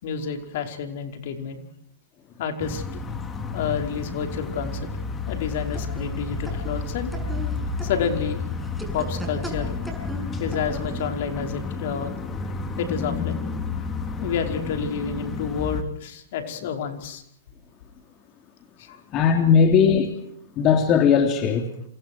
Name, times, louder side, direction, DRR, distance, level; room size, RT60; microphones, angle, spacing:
voice 1, 0.0-1.6 2.4-2.8 3.5-4.9 5.3-7.1 7.8-8.5 8.9-9.7 10.4-12.5 12.8-13.4 13.8-17.2 18.8-19.2, left 7 dB, 60° left, 5 dB, 5.2 m, -30 dB
sound 1, 2.6-15.8, left 4 dB, 20° left, 3.5 m, -31 dB
sound 2, 5.2-11.2, right 1 dB, ahead, 7.0 m, -39 dB
voice 2, 19.1-20.1 20.5-21.7, left 6 dB, 35° left, 5 dB, 3.4 m, -18 dB
28.5 x 27.5 x 4.7 m, 0.68 s
hypercardioid pair, 125°, 0 cm